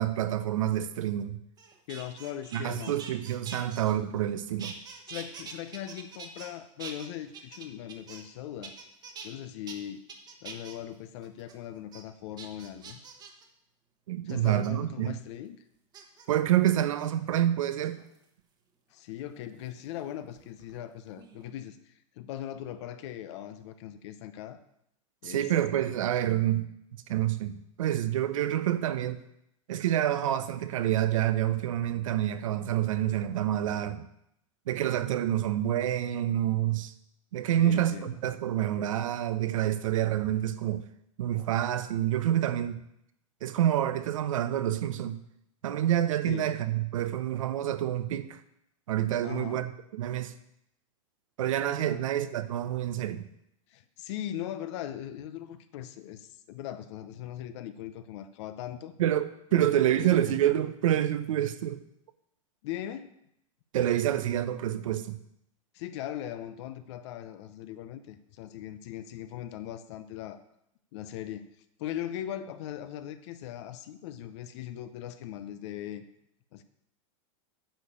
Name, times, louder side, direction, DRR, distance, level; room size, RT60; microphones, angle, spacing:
voice 1, 0.0-1.4 2.5-4.8 14.1-15.2 16.3-18.0 25.2-27.5 27.8-29.2 29.7-34.1 34.7-36.9 37.3-40.8 41.2-42.8 43.4-45.2 45.6-48.4 48.9-50.3 51.4-53.3 59.0-61.8 63.7-65.2, right 12 dB, 80° right, 0.8 m, -28 dB
sound 1, 1.6-4.3 4.6-6.5 6.8-8.3 8.6-9.3 9.7-9.8 10.1-10.8 11.2-11.5 11.9-12.0 12.4-13.4 14.3-14.7 15.9-16.3 16.9-17.1 17.7-18.2 19.7-20.9 21.1-21.5, right 5 dB, 25° right, 1.2 m, -45 dB
voice 2, 1.9-2.9 5.1-8.7 9.2-10.0 10.4-13.0 14.2-15.6 18.9-24.6 25.2-25.5 37.6-38.2 46.3-46.5 49.2-49.6 51.9-52.0 53.7-58.9 59.5-60.4 62.6-63.1 65.7-70.4 70.9-71.5 71.8-76.0 76.5-76.6, left 11 dB, 60° left, 0.8 m, -39 dB
9.1 x 4.9 x 6.8 m
hypercardioid pair, 130°, 17 cm